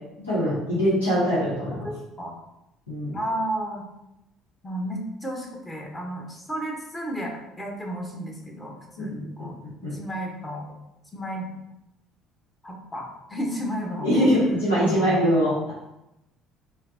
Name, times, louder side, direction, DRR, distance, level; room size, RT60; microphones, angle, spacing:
voice 1, 0.2-1.9 2.9-3.2 9.0-9.1 9.4-9.5 9.8-9.9 14.0-15.7, equal, 90° left, -9 dB, 0.8 m, -22 dB
voice 2, 1.8-2.4 3.1-3.9 4.6-9.5 9.9-10.7 11.1-11.5 12.6-14.3 14.7-15.1, equal, 20° left, 0 dB, 0.9 m, -32 dB
4.3 x 2.0 x 2.6 m, 0.90 s
hypercardioid pair, 55°, 0 cm